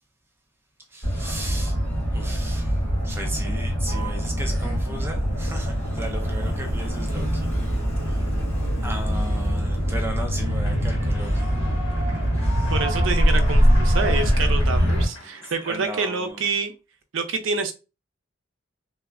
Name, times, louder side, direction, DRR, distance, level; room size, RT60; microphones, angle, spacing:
voice 1, 0.9-1.7 2.1-7.5 8.0-8.4 8.8-11.5 15.6-16.4, right 1 dB, 10° right, 0.4 m, -36 dB
Motor vehicle (road), 1.0-15.1, equal, 30° left, 1.5 m, -23 dB
Human voice / Clapping / Cheering, 10.3-16.3, right 1 dB, 85° left, 1.1 m, -38 dB
voice 2, 12.7-16.7 17.1-17.7, right 4 dB, 80° right, 0.5 m, -27 dB
3.4 x 2.0 x 2.4 m
head